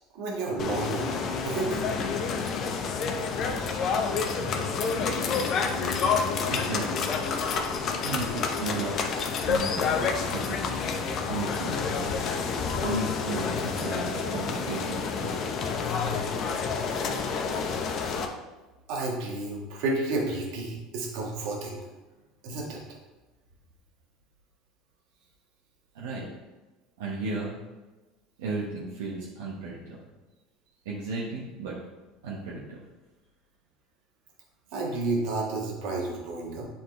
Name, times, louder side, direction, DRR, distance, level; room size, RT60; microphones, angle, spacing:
voice 1, 0.1-1.1 1.4-1.8 18.9-21.8 22.4-22.8 34.7-36.7, right 2 dB, 70° right, -1 dB, 1.6 m, -31 dB
sound 1, 0.6-18.3, left 5 dB, 45° left, 0.7 m, -29 dB
voice 2, 6.5-7.1 8.0-9.0 9.4-9.9 10.1-10.7 11.2-12.1 12.8-15.4 25.9-26.3 27.0-27.6 28.4-30.0 30.8-31.8 32.2-32.8, right 3 dB, 85° right, -5 dB, 1.2 m, -34 dB
8.0 x 4.3 x 3.3 m, 1.2 s
supercardioid pair, 90°, 0 cm